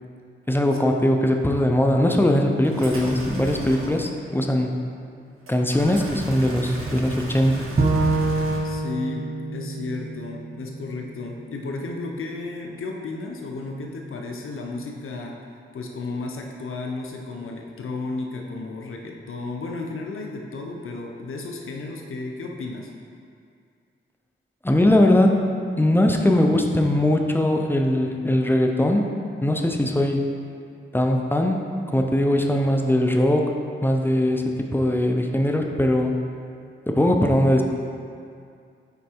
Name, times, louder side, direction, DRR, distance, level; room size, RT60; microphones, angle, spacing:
voice 1, 0.5-4.7 5.5-7.6 24.6-25.5 25.8-29.1 29.4-30.2 30.9-33.5 33.8-36.2 36.9-37.6, left 1 dB, 10° left, 3 dB, 0.6 m, -20 dB
sound 1, 2.6-4.0 5.5-8.6, right 1 dB, 80° right, 1.0 m, -34 dB
Bowed string instrument, 7.8-11.0, right 3 dB, 40° right, 0.8 m, -25 dB
voice 2, 8.6-15.4 15.7-22.9, left 3 dB, 80° left, 1 dB, 0.7 m, -33 dB
5.3 x 4.4 x 4.4 m, 2.3 s
cardioid pair, 65°, 21 cm